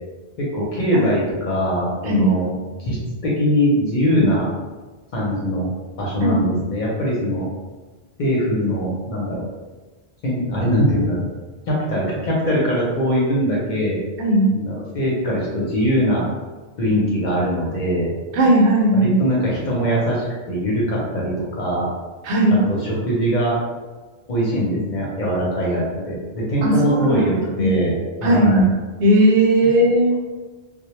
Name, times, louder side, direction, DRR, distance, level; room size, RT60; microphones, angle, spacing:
voice 1, 0.4-3.0 3.2-4.5 5.1-5.7 6.0-7.5 8.2-9.4 10.2-11.2 11.7-14.0 14.5-16.3 16.8-18.1 18.9-21.9 22.7-23.6 24.3-28.6, equal, 55° left, -5 dB, 0.6 m, -22 dB
voice 2, 18.3-19.1 22.2-22.6 26.6-27.3 27.6-27.7 28.2-28.7 29.0-30.2, right 1 dB, 85° right, -2 dB, 0.9 m, -17 dB
2.1 x 2.0 x 2.9 m, 1.3 s
omnidirectional pair, 1.1 m